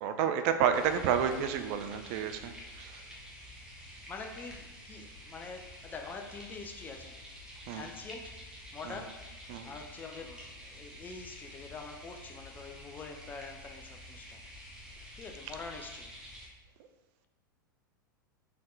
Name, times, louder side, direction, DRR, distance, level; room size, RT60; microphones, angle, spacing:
voice 1, 0.0-3.0 7.7-7.8 8.9-9.0 9.5-9.7, right 8 dB, 40° right, 8 dB, 0.4 m, -30 dB
sound 1, 0.7-16.5, equal, 5° right, 1.0 m, -49 dB
voice 2, 4.1-7.2 7.7-8.4 8.7-9.3 9.6-14.4 15.1-16.1, left 4 dB, 15° left, 3 dB, 0.5 m, -45 dB
4.2 x 3.7 x 3.1 m, 1.1 s
figure-of-eight pair, 90°, 11 cm